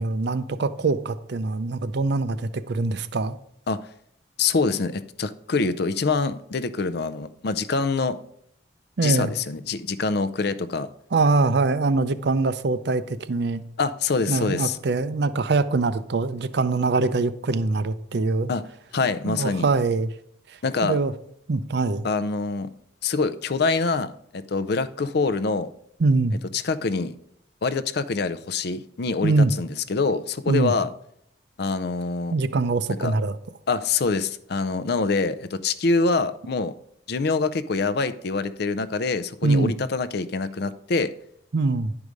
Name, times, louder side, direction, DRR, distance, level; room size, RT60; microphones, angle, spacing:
voice 1, 0.0-3.4 9.0-9.3 11.1-13.6 14.3-18.5 19.3-20.1 20.8-21.1 21.5-22.1 26.0-26.4 29.2-29.5 30.5-30.7 32.3-33.4 39.4-39.7 41.5-41.9, right 3 dB, 55° right, 0.5 m, -23 dB
voice 2, 4.4-8.2 9.0-10.9 13.8-14.8 18.5-18.6 18.9-19.7 20.6-21.0 22.0-22.7 23.0-25.7 26.5-27.1 27.6-30.9 31.6-32.4 32.9-33.1 33.7-36.7 37.1-41.1, left 4 dB, 55° left, 0.5 m, -25 dB
11.0 x 4.8 x 5.1 m
head